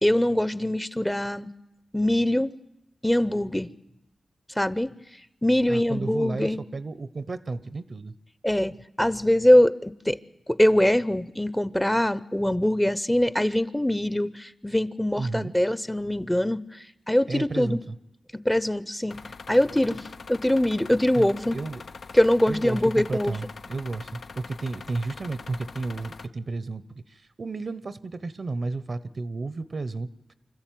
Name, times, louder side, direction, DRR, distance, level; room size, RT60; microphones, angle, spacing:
voice 1, 0.0-1.5 1.9-2.5 3.0-3.7 4.6-4.9 5.4-6.6 8.4-10.2 10.5-17.8 18.4-19.2 19.5-21.6 22.1-23.4, left 1 dB, 10° left, 17 dB, 0.8 m, -23 dB
voice 2, 5.7-8.1 15.2-15.5 17.3-18.0 21.1-21.8 22.5-30.1, right 3 dB, 60° right, 16 dB, 0.9 m, -32 dB
sound 1, 19.1-26.3, left 4 dB, 70° left, 0.9 m, -43 dB
25.5 x 14.0 x 9.2 m, 0.90 s
cardioid pair, 45°, 0 cm